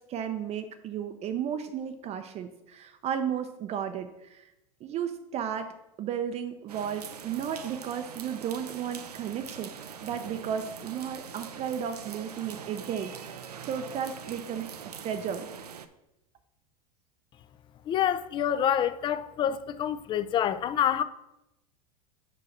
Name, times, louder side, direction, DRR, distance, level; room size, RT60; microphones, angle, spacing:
voice 1, 0.1-4.5 4.8-5.7 6.0-9.7 10.0-14.7 15.0-15.5, right 8 dB, 35° right, 0.5 m, -34 dB
sound 1, 6.7-15.9, right 7 dB, 90° right, 0.5 m, -43 dB
voice 2, 17.9-21.0, left 9 dB, 25° left, 0.4 m, -27 dB
5.0 x 4.7 x 5.9 m
hypercardioid pair, 90°, 20 cm